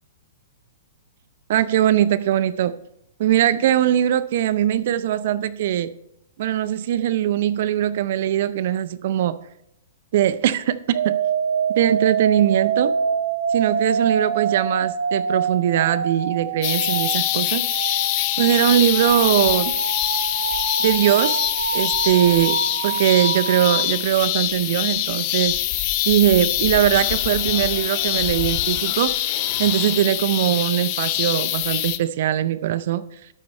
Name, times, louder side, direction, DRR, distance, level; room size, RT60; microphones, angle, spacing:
voice 1, 1.5-2.7 3.2-5.9 6.4-9.4 10.1-11.2 11.8-12.9 13.5-17.7 18.4-19.7 20.8-21.3 21.7-22.6 22.8-25.5 26.1-29.1 29.6-33.0, right 11 dB, 50° right, 15 dB, 0.4 m, -20 dB
sound 1, 10.9-23.8, right 6 dB, 85° right, 1.2 m, -26 dB
sound 2, 16.6-32.0, left 14 dB, 35° left, 0.5 m, -24 dB
Mechanisms, 25.7-26.6 26.9-30.5, left 4 dB, 60° left, 2.4 m, -41 dB
12.5 x 5.3 x 4.3 m, 0.82 s
hypercardioid pair, 160°, 0 cm